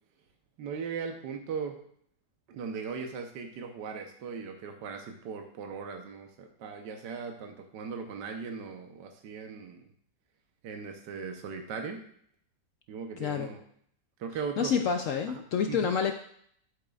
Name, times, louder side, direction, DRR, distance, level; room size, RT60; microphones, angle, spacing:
voice 1, 0.6-1.8 2.5-9.8 10.6-12.0 12.9-13.6 14.2-14.7 15.7-15.9, right 5 dB, 75° right, 4 dB, 1.5 m, -38 dB
voice 2, 13.2-13.5 14.6-16.1, left 6 dB, 75° left, 5 dB, 0.7 m, -28 dB
10.5 x 8.1 x 2.4 m, 0.65 s
omnidirectional pair, 1.9 m